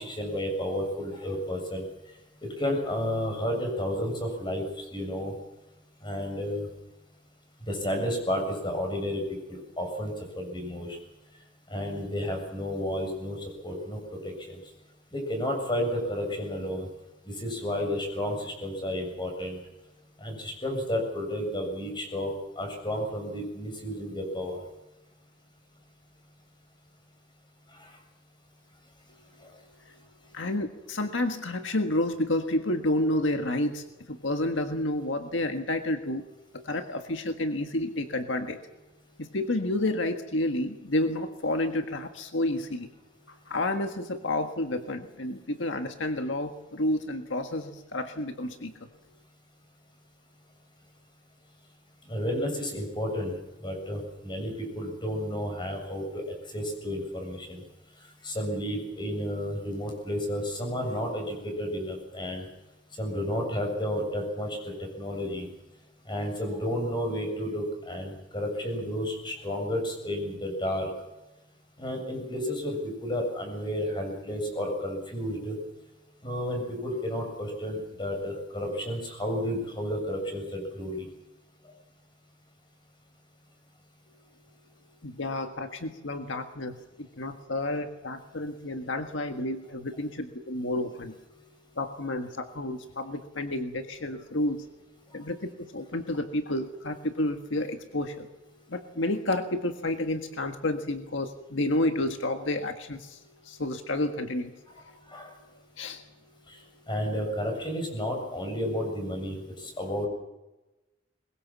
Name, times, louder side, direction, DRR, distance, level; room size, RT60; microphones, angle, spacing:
voice 1, 0.0-1.9 2.4-5.4 6.0-6.7 7.6-11.0 11.7-14.6 15.1-16.9 17.2-19.6 20.2-24.6 27.7-28.0 29.4-29.6 52.0-57.6 58.0-62.5 62.9-65.5 66.0-70.9 71.8-75.6 76.2-81.1 81.6-81.7 95.1-95.3 105.1-105.3 106.5-110.1, equal, 25° left, 3 dB, 7.3 m, -32 dB
voice 2, 30.3-36.2 36.5-38.6 39.2-42.9 43.3-48.7 85.0-91.1 91.8-94.7 95.1-98.3 98.7-104.5 104.9-105.0 105.8-106.0, left 1 dB, 85° left, 6 dB, 1.7 m, -30 dB
22.5 x 21.5 x 7.4 m, 1.0 s
head